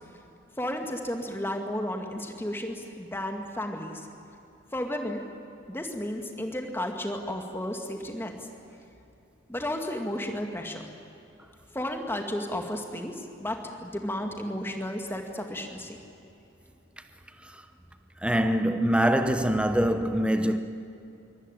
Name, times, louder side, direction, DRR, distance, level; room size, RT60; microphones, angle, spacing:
voice 1, 0.6-4.0 4.7-5.2 5.7-8.3 9.5-10.8 11.7-16.0, left 1 dB, 10° left, 2.3 m, -33 dB
voice 2, 18.2-20.6, right 1 dB, 5° right, 0.9 m, -24 dB
23.5 x 18.5 x 9.2 m
head